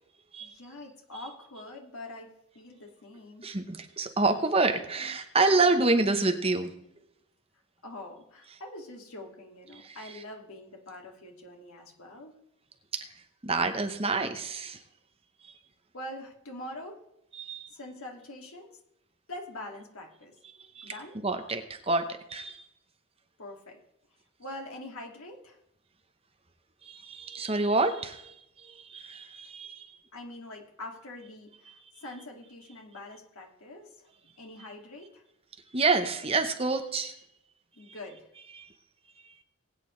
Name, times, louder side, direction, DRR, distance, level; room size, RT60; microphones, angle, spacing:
voice 1, 0.4-3.5 7.8-12.3 15.9-17.0 17.7-18.8 19.3-20.4 20.8-21.2 23.4-23.8 24.4-25.6 30.1-34.1 34.4-35.2 37.7-38.3, left 1 dB, 75° left, 1 dB, 2.4 m, -44 dB
voice 2, 3.4-6.7 9.8-10.0 12.9-13.1 13.4-14.8 17.4-17.7 20.7-20.9 21.2-22.6 26.8-30.0 35.7-37.1 38.5-38.7, right 3 dB, 25° right, 6 dB, 0.9 m, -28 dB
20.0 x 9.1 x 3.3 m, 0.81 s
head